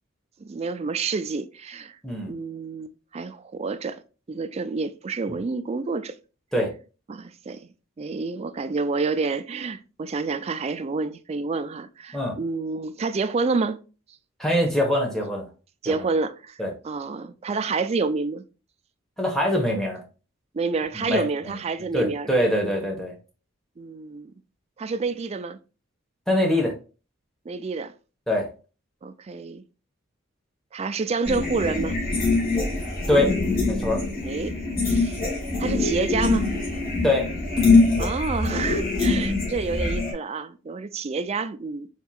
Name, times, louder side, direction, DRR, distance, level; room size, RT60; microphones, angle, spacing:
voice 1, 0.4-2.0 2.3-4.0 4.3-6.2 7.1-7.6 8.0-13.8 15.8-18.4 20.5-22.3 23.8-24.3 24.8-25.6 27.5-27.9 29.0-29.6 30.7-32.0 34.2-34.6 34.8-35.2 35.6-36.5 38.0-41.9, right 4 dB, 30° right, 0.4 m, -28 dB
voice 2, 14.4-15.5 15.8-15.9 16.6-16.7 19.2-20.0 20.9-21.6 21.9-23.1 26.3-26.7 28.3-28.5 33.1-33.3 33.7-34.0 37.0-37.3, left 1 dB, ahead, 1.2 m, -23 dB
sound 1, 31.2-40.1, left 3 dB, 50° left, 1.9 m, -23 dB
4.4 x 3.8 x 2.3 m
head